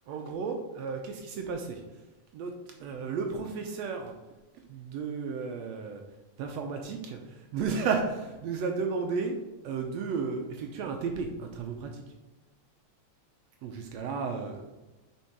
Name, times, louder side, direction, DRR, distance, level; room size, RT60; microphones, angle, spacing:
voice 1, 0.1-1.8 2.3-2.6 2.8-4.1 4.7-6.0 6.4-9.4 9.6-12.0 13.6-14.8, right 5 dB, 75° right, 3 dB, 1.7 m, -33 dB
7.2 x 4.5 x 4.6 m, 1.1 s
omnidirectional pair, 3.3 m